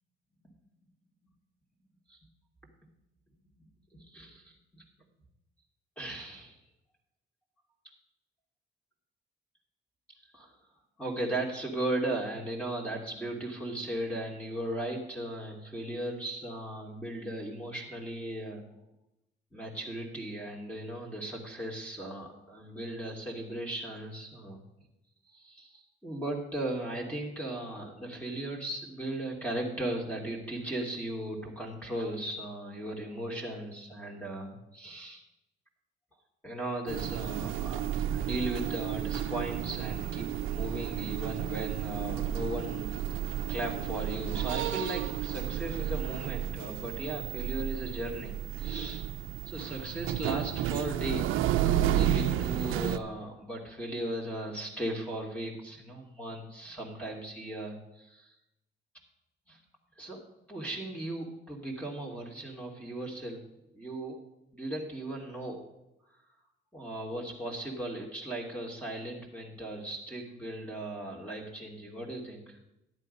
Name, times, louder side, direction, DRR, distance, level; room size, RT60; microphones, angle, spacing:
voice 1, 3.9-4.8 6.0-6.6 10.3-10.5 11.0-18.6 19.5-24.6 25.3-35.2 36.4-42.9 43.5-49.1 49.5-58.3 59.5-59.6 60.0-60.2 60.5-63.4 63.7-64.2 64.5-65.6 66.7-72.6, right 1 dB, 5° left, -1 dB, 2.5 m, -37 dB
sound 1, 36.9-53.0, right 11 dB, 90° right, 0.5 m, -32 dB
11.5 x 8.2 x 5.4 m, 0.87 s
cardioid pair, 90°, 20 cm